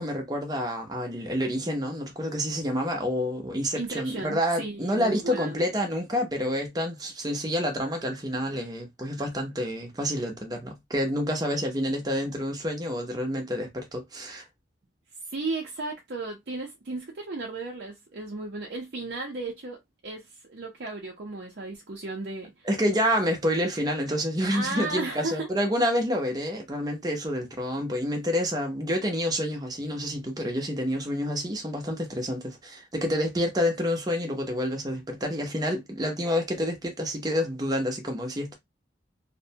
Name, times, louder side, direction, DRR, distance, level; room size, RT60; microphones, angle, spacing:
voice 1, 0.0-14.4 22.6-38.6, equal, 20° right, 0.7 m, -28 dB
voice 2, 3.7-5.6 15.3-22.7 24.5-25.5, right 3 dB, 60° right, 0.6 m, -35 dB
2.6 x 2.1 x 2.7 m
head